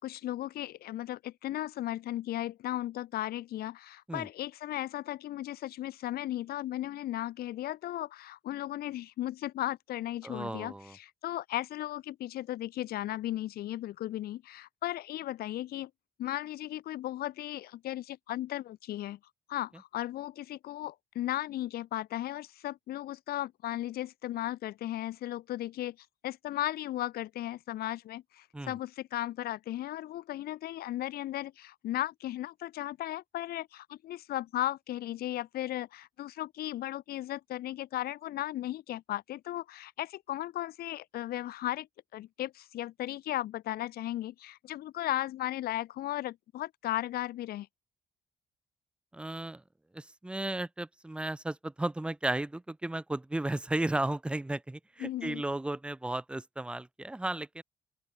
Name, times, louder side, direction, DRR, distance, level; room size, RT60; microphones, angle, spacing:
voice 1, 0.0-15.9 16.2-19.2 19.5-26.0 26.2-41.9 42.1-47.7 55.0-55.4, left 14 dB, 90° left, 2.0 m, -36 dB
voice 2, 10.2-10.9 28.5-28.7 49.1-49.6 49.9-57.6, right 2 dB, 5° right, 0.7 m, -34 dB
open air
cardioid pair, 175°, 15 cm